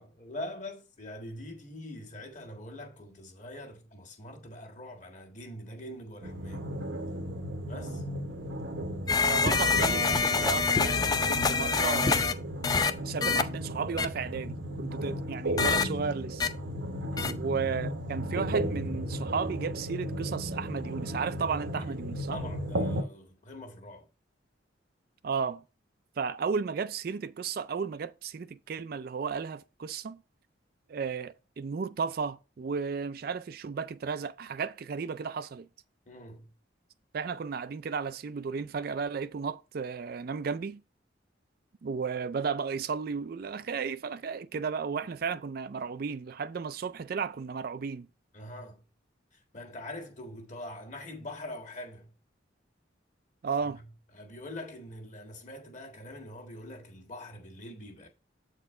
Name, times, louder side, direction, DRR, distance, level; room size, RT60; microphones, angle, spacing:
voice 1, 0.0-6.7 7.7-8.0 17.1-17.5 21.7-21.9 22.3-24.1 36.0-36.5 48.3-48.8 49.3-52.1 53.6-53.9 54.1-58.1, left 1 dB, 40° left, 1.6 m, -43 dB
sound 1, 6.2-23.0, equal, 80° right, 0.9 m, -35 dB
sound 2, 9.1-12.3 12.6-12.9 13.2-13.4 14.0-14.1 15.6-15.8 16.4-16.5 17.2-17.3, left 4 dB, 20° left, 0.4 m, -25 dB
voice 2, 9.2-12.4 13.0-16.5 17.2-22.4 25.2-25.6 26.2-30.2 30.9-35.7 37.1-40.8 41.8-48.1 53.4-53.8, right 5 dB, 50° right, 0.4 m, -34 dB
8.0 x 4.4 x 4.3 m
head